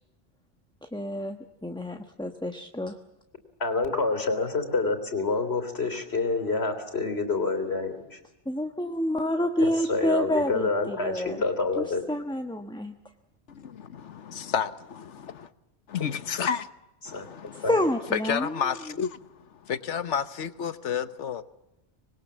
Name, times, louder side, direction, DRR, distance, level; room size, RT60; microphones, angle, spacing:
voice 1, 0.9-3.0 8.5-11.4 11.8-12.9 17.7-18.7, left 1 dB, 5° left, 1.1 m, -28 dB
voice 2, 3.6-8.2 9.6-12.0 17.1-17.2 17.6-17.8, left 3 dB, 60° left, 3.6 m, -27 dB
voice 3, 13.5-15.5 15.9-16.7 17.1-17.7 18.1-21.4, left 7 dB, 80° left, 1.4 m, -31 dB
26.0 x 21.0 x 7.3 m
omnidirectional pair, 1.2 m